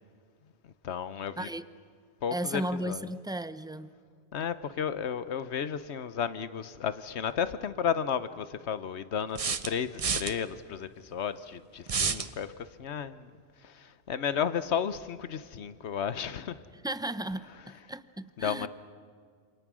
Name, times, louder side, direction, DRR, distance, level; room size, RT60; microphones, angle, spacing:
voice 1, 0.8-1.5 2.2-3.1 4.3-13.3 13.6-16.6 18.4-18.7, left 7 dB, 75° left, 1.1 m, -33 dB
voice 2, 1.4-1.7 2.3-3.9 16.8-18.7, right 1 dB, 5° right, 0.3 m, -35 dB
sound 1, 7.3-7.4 9.3-10.3 11.9-12.3, right 5 dB, 35° right, 0.7 m, -29 dB
27.5 x 27.0 x 6.2 m
omnidirectional pair, 1.2 m